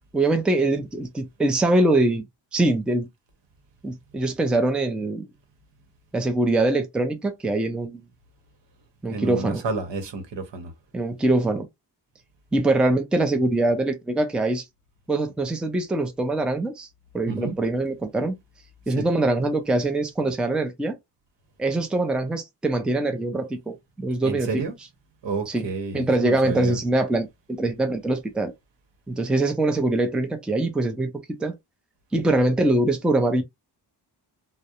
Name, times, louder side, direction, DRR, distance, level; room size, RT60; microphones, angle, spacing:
voice 1, 0.1-2.2 2.5-3.1 3.8-5.3 6.1-8.0 9.0-9.6 10.9-11.7 12.5-14.6 15.1-16.9 17.1-18.4 18.9-21.0 21.6-24.6 25.5-25.7 25.9-27.3 27.6-28.5 29.1-31.1 31.4-31.5 32.1-33.4, right 2 dB, ahead, 0.4 m, -23 dB
voice 2, 9.1-10.7 17.3-17.6 18.9-19.1 24.2-24.7 25.2-26.8, right 4 dB, 80° right, 0.9 m, -30 dB
2.3 x 2.0 x 2.7 m
wide cardioid pair, 125°, 43 cm